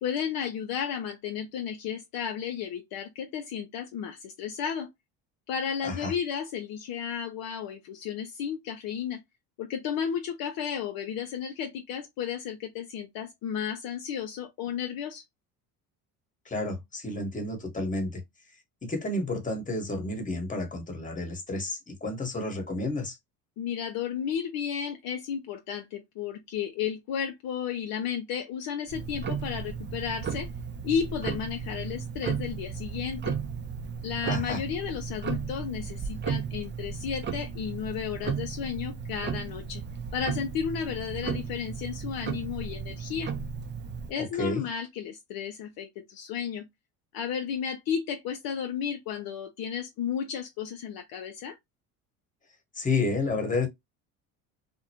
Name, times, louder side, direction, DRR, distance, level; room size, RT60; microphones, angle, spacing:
voice 1, 0.0-4.9 5.5-9.2 9.6-15.2 23.6-30.5 30.8-33.3 34.0-39.8 40.1-43.3 44.1-46.7 47.1-51.6, left 8 dB, 55° left, 0.6 m, -33 dB
voice 2, 16.4-18.2 18.8-23.2 34.3-34.6 44.2-44.6 52.7-53.7, left 2 dB, 20° left, 1.1 m, -31 dB
Tick-tock, 28.9-44.1, right 6 dB, 25° right, 0.5 m, -35 dB
2.5 x 2.0 x 2.8 m
hypercardioid pair, 75°, 43 cm